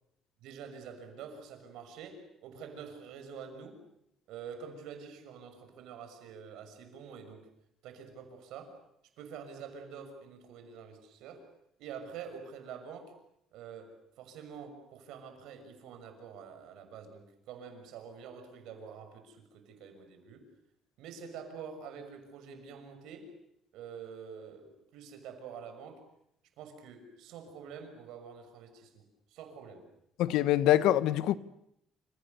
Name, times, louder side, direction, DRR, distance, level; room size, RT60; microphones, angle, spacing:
voice 1, 0.4-3.8 4.3-7.5 7.8-8.8 9.2-11.5 11.8-13.1 13.5-20.4 21.0-23.3 23.7-26.0 26.6-29.0 29.3-29.9, right 6 dB, 75° right, 6.2 m, -47 dB
voice 2, 30.2-31.4, left 13 dB, 80° left, 1.1 m, -24 dB
28.5 x 27.5 x 6.8 m
cardioid pair, 170°, 0 cm